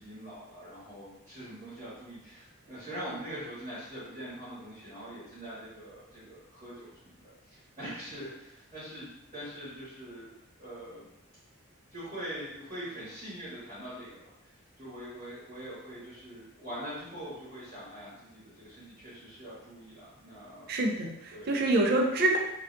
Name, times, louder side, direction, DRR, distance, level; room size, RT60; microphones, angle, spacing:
voice 1, 0.0-11.1 11.9-20.7 21.3-21.5, equal, 25° right, -11 dB, 1.0 m, -43 dB
voice 2, 20.7-22.4, right 2 dB, 45° right, 1 dB, 0.3 m, -26 dB
2.4 x 2.1 x 2.4 m, 0.87 s
head